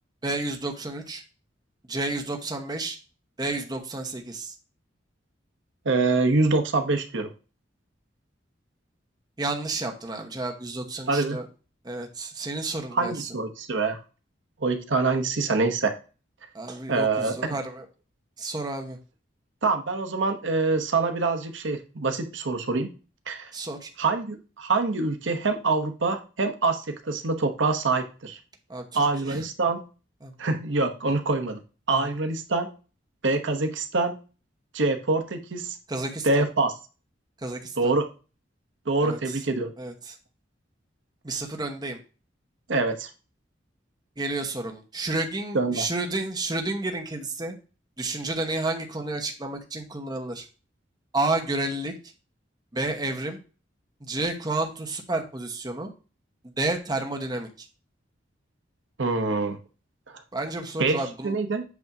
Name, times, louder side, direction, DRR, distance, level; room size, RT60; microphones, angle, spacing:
voice 1, 0.2-1.2 1.9-3.0 3.4-4.5 9.4-11.5 11.8-13.1 16.5-17.8 18.4-19.0 23.5-23.9 28.7-29.4 30.2-30.3 31.9-32.1 35.9-36.4 37.4-37.9 39.0-39.4 39.8-40.2 41.2-42.0 44.2-47.5 48.0-50.5 51.1-51.9 52.7-53.4 54.0-55.9 56.4-57.7 60.3-61.4, right 2 dB, 20° right, 3 dB, 1.0 m, -31 dB
voice 2, 5.8-7.3 11.1-11.4 12.9-14.0 14.6-15.9 16.9-17.3 19.6-22.9 23.3-23.5 24.0-28.4 28.9-29.8 30.4-31.6 31.9-32.7 33.2-34.2 34.7-35.8 36.2-36.7 37.8-38.1 38.9-39.7 42.7-43.1 45.5-45.9 59.0-59.6 60.8-61.6, right 3 dB, 85° right, 6 dB, 0.9 m, -25 dB
8.1 x 2.7 x 5.8 m, 0.34 s
head